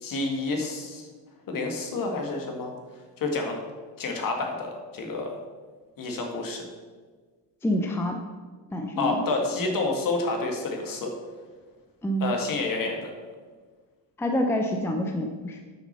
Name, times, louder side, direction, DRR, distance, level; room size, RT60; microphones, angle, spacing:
voice 1, 0.0-1.1 1.5-2.7 3.2-3.6 4.0-5.4 6.0-6.6 9.0-11.1 12.2-13.1, left 3 dB, 50° left, 2 dB, 2.0 m, -29 dB
voice 2, 7.6-8.2 8.7-9.2 12.0-12.4 14.2-15.6, equal, 5° left, 3 dB, 0.6 m, -27 dB
8.9 x 6.3 x 6.7 m, 1.4 s
cardioid pair, 165°, 43 cm